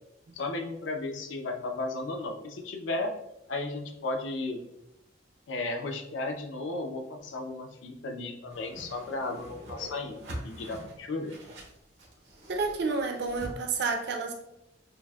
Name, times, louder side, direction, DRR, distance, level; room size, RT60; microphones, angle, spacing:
voice 1, 0.3-3.1 3.5-4.6 5.5-11.3, left 2 dB, 85° left, 4 dB, 0.5 m, -34 dB
Whoosh swoosh swish, 8.5-13.5, right 1 dB, 80° right, 0.9 m, -44 dB
voice 2, 12.5-14.3, right 4 dB, 60° right, 3 dB, 0.5 m, -30 dB
5.9 x 2.1 x 2.2 m, 0.86 s
head